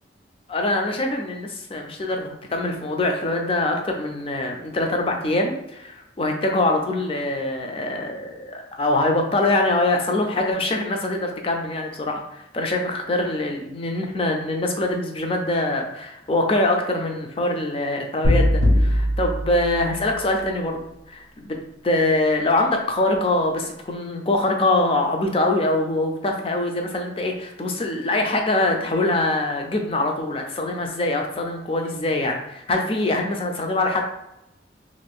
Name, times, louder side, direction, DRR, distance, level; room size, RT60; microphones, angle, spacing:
voice 1, 0.5-20.8 21.1-21.6 21.8-34.0, left 2 dB, 30° left, 3 dB, 0.4 m, -24 dB
sound 1, 18.2-20.4, left 1 dB, 80° left, 1.3 m, -21 dB
2.5 x 2.5 x 3.4 m, 0.87 s
head